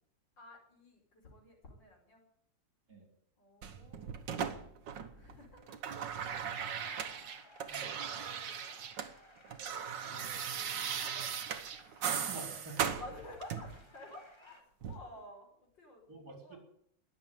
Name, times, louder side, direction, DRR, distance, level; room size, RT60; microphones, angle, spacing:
voice 1, 0.4-2.2 3.4-4.3 5.1-7.2 7.8-8.8 10.7-11.3 12.8-16.1 16.4-16.6, left 1 dB, 90° left, 0 dB, 5.6 m, -52 dB
sound 1, 3.6-5.3 5.6-9.1 9.4-13.8 14.8-15.0, right 7 dB, 85° right, 1.9 m, -38 dB
sound 2, 5.8-14.6, left 1 dB, 15° left, 1.9 m, -60 dB
voice 2, 10.1-10.4 12.1-12.9 16.1-16.6, right 3 dB, 60° right, 3 dB, 4.8 m, -48 dB
20.5 x 7.2 x 9.4 m, 0.69 s
omnidirectional pair, 1.9 m